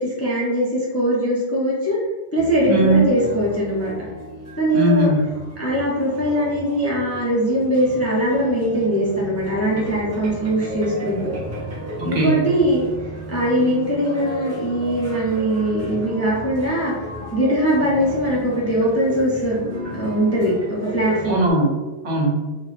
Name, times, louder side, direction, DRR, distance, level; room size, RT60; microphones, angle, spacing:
voice 1, 0.0-2.0 2.3-3.9 4.6-5.1 5.6-11.3 12.0-12.8 13.3-16.9 17.3-19.6 19.9-21.4, right 1 dB, 25° left, -6 dB, 0.3 m, -21 dB
sound 1, 2.4-21.5, equal, 15° right, 0.8 m, -33 dB
voice 2, 2.7-3.1 4.7-5.4 12.0-12.5 21.3-21.7 22.0-22.5, right 1 dB, 80° right, -1 dB, 1.0 m, -19 dB
3.1 x 2.1 x 2.4 m, 1.2 s
omnidirectional pair, 1.1 m